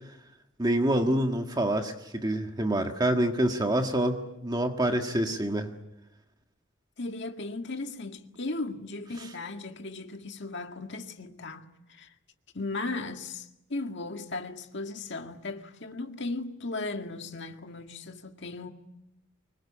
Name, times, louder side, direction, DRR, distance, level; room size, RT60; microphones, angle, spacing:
voice 1, 0.6-5.7, right 1 dB, 20° right, 1.7 m, -26 dB
voice 2, 7.0-12.1 12.5-18.7, left 3 dB, 60° left, 2.0 m, -36 dB
25.0 x 21.5 x 8.7 m
head